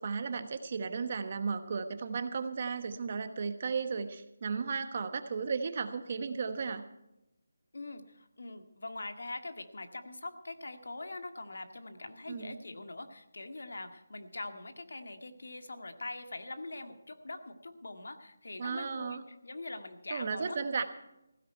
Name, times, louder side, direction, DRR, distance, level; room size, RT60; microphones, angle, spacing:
voice 1, 0.0-6.8 12.3-12.6 18.6-19.2 20.1-20.8, right 5 dB, 35° right, 9 dB, 1.1 m, -35 dB
voice 2, 7.7-20.8, left 2 dB, 75° left, 7 dB, 1.9 m, -43 dB
16.0 x 14.0 x 4.5 m, 0.88 s
figure-of-eight pair, 175°, 0 cm